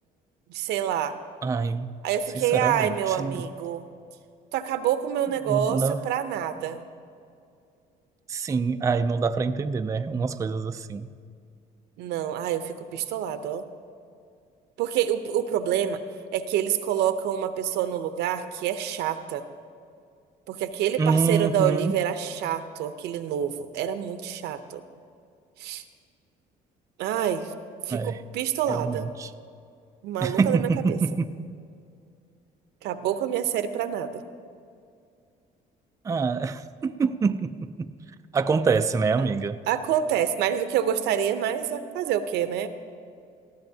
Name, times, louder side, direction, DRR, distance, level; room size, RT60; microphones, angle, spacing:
voice 1, 0.5-1.2 2.0-3.9 4.5-6.8 12.0-13.6 14.8-16.0 16.3-19.4 20.5-24.8 25.6-25.8 27.0-27.5 27.9-29.1 30.0-31.0 32.8-34.2 39.2-39.3 39.7-42.7, right 10 dB, 85° right, 10 dB, 0.7 m, -27 dB
voice 2, 1.4-1.9 2.5-3.4 5.5-6.0 8.3-11.1 21.0-21.9 27.9-28.2 28.7-29.3 30.2-31.3 36.0-38.0 38.3-39.6, right 4 dB, 20° right, 8 dB, 0.4 m, -26 dB
19.0 x 14.5 x 2.8 m, 2.4 s
cardioid pair, 110°, 17 cm